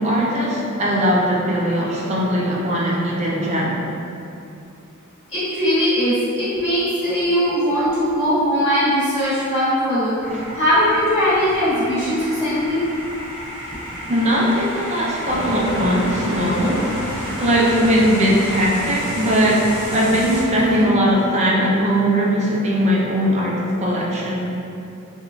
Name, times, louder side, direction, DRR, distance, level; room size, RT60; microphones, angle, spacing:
voice 1, 0.0-3.8 14.1-16.9 17.4-24.5, equal, 30° right, -4 dB, 0.4 m, -19 dB
voice 2, 5.3-10.2 10.5-12.8, equal, 20° left, -15 dB, 1.0 m, -20 dB
sound 1, 10.2-20.4, equal, 10° right, 1.0 m, -34 dB
sound 2, 15.3-20.9, equal, 75° left, 1.1 m, -30 dB
3.0 x 2.2 x 2.4 m, 2.6 s
head